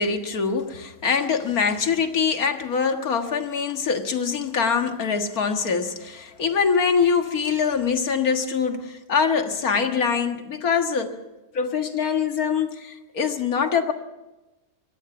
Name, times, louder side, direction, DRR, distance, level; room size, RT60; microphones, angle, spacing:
voice 1, 0.0-11.2 11.5-13.9, left 6 dB, 60° left, 2.0 m, -24 dB
25.0 x 19.0 x 6.0 m
omnidirectional pair, 1.8 m